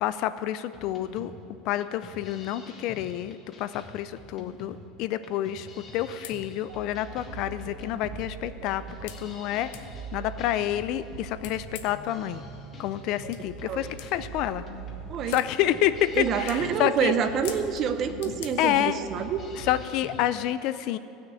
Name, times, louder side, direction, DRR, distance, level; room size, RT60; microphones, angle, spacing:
voice 1, 0.0-12.4 12.8-14.6 15.3-17.1 18.3-19.0 19.5-21.0, left 12 dB, 45° left, 14 dB, 0.4 m, -29 dB
sound 1, 0.7-20.2, left 3 dB, 25° left, 1.2 m, -47 dB
sound 2, 5.9-6.0 6.2-6.4 7.2-7.3 7.8-7.9 9.1-9.2 9.7-9.9 11.4-12.0 13.3-13.4 14.0-14.1 15.3-15.5 16.0-16.2 16.5-16.6 17.4-17.9 18.2-18.5, left 11 dB, 90° left, 0.8 m, -42 dB
sound 3, 6.7-19.8, right 5 dB, 65° right, 1.0 m, -43 dB
voice 2, 16.2-19.4, right 7 dB, 30° right, 9 dB, 0.7 m, -27 dB
15.0 x 6.5 x 8.3 m, 2.7 s
cardioid pair, 175°, 0 cm